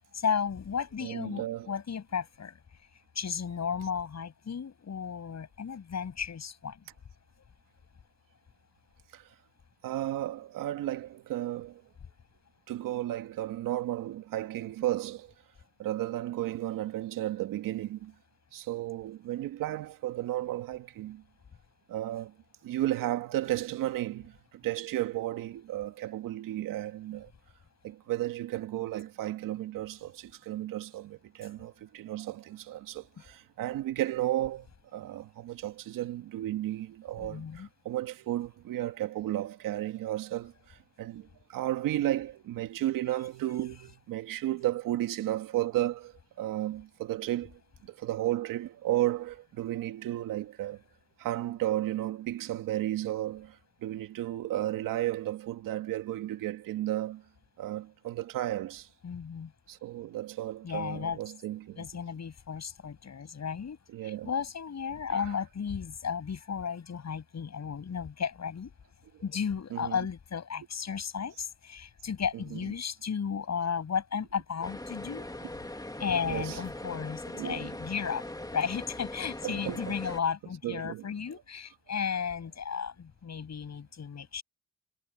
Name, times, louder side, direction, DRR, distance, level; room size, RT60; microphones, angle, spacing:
voice 1, 0.1-2.6 3.1-6.8 37.2-37.7 59.0-59.5 60.6-61.2 61.8-68.7 69.2-75.3 76.0-78.3 78.5-84.4, left 7 dB, 55° left, 7.7 m, -34 dB
voice 2, 1.0-1.7 9.1-9.3 9.8-11.8 12.7-15.3 15.8-18.1 18.5-21.2 21.9-22.4 22.6-27.3 27.8-50.8 51.2-57.2 57.6-58.9 59.7-61.9 63.9-64.3 65.1-65.3 69.1-69.2 69.7-70.0 72.5-72.6 76.2-76.6 77.3-77.7 79.4-79.8 80.6-81.1, right 14 dB, 80° right, 2.3 m, -33 dB
sound 1, 74.6-80.2, left 1 dB, 10° left, 2.7 m, -41 dB
supercardioid pair, 50°, 32 cm